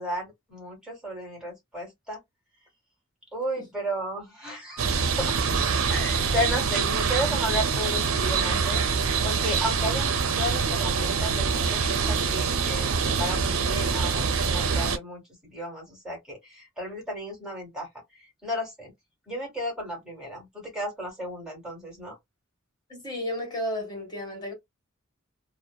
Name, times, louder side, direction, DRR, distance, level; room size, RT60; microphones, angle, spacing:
voice 1, 0.0-2.2 3.3-5.4 5.9-8.8 9.2-10.1 10.4-18.9 19.3-22.2, equal, 5° right, 1.5 m, -33 dB
sound 1, 4.8-15.0, right 5 dB, 75° right, 0.5 m, -25 dB
voice 2, 22.9-24.5, left 1 dB, 20° left, 1.5 m, -33 dB
2.7 x 2.1 x 2.2 m
head